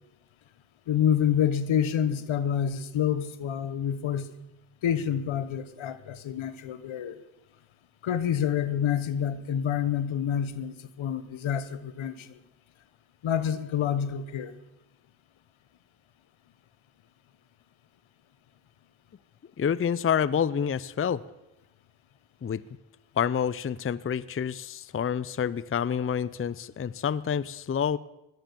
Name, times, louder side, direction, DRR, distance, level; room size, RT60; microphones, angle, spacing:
voice 1, 0.9-4.3 4.8-7.2 8.0-12.3 13.2-14.5, left 9 dB, 75° left, 14 dB, 1.1 m, -28 dB
voice 2, 19.6-21.2 22.4-22.6 23.2-28.0, left 8 dB, 30° left, 20 dB, 0.6 m, -28 dB
17.5 x 11.5 x 7.0 m, 0.94 s
supercardioid pair, 45°, 48 cm